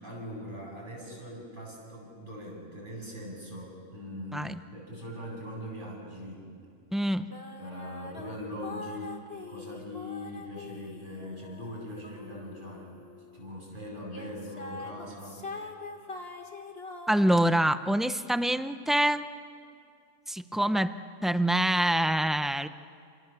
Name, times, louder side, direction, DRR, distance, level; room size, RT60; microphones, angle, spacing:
voice 1, 0.0-6.5 7.6-9.2 9.5-12.9 13.3-15.4, left 1 dB, 40° right, -2 dB, 8.3 m, -41 dB
voice 2, 6.9-7.3 17.1-19.3 20.3-21.0 21.2-22.7, right 1 dB, ahead, 11 dB, 0.4 m, -25 dB
sound 1, 7.3-13.5 14.1-17.8, left 3 dB, 50° left, 2.2 m, -44 dB
29.5 x 28.0 x 7.1 m, 2.4 s
omnidirectional pair, 1.3 m